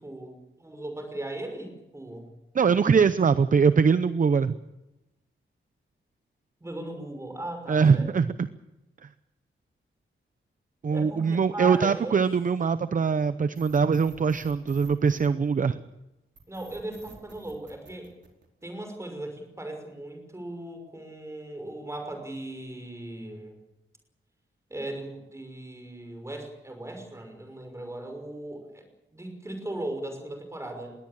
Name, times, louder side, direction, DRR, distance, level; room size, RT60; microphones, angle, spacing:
voice 1, 0.0-2.3 6.6-8.1 10.9-12.3 13.0-13.4 16.5-18.1 18.6-23.6 24.7-28.8 29.1-30.9, right 1 dB, 15° right, 4 dB, 5.8 m, -38 dB
voice 2, 2.5-4.6 7.7-8.5 10.8-15.8, right 5 dB, 40° right, 13 dB, 0.7 m, -22 dB
sound 1, 13.5-15.8 16.3-18.8, right 3 dB, 60° right, 4.8 m, -52 dB
21.5 x 17.5 x 8.8 m, 0.96 s
wide cardioid pair, 160°, 21 cm